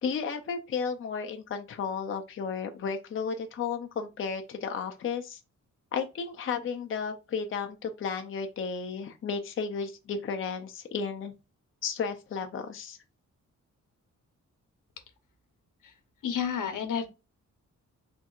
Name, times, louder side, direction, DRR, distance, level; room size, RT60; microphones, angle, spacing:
voice 1, 0.0-5.4 5.9-11.3 11.8-13.0, left 6 dB, 45° left, 0.5 m, -33 dB
voice 2, 16.2-17.1, left 7 dB, 85° left, 0.9 m, -30 dB
4.4 x 3.6 x 2.3 m
wide cardioid pair, 160°, 30 cm